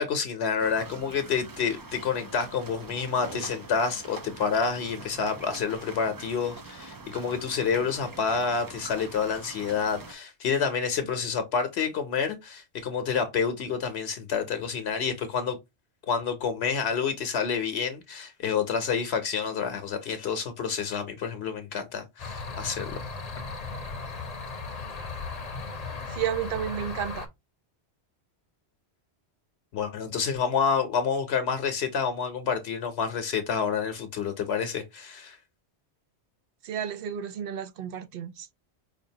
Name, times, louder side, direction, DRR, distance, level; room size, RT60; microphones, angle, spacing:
voice 1, 0.0-15.6 16.1-23.0 29.7-35.4, left 6 dB, 75° left, 0.9 m, -28 dB
sound 1, 0.6-10.1, right 3 dB, 35° right, 0.3 m, -44 dB
sound 2, 22.2-27.3, left 4 dB, 40° left, 0.7 m, -36 dB
voice 2, 26.1-27.3 36.6-38.5, right 9 dB, 60° right, 0.7 m, -32 dB
5.1 x 2.4 x 2.7 m
omnidirectional pair, 1.1 m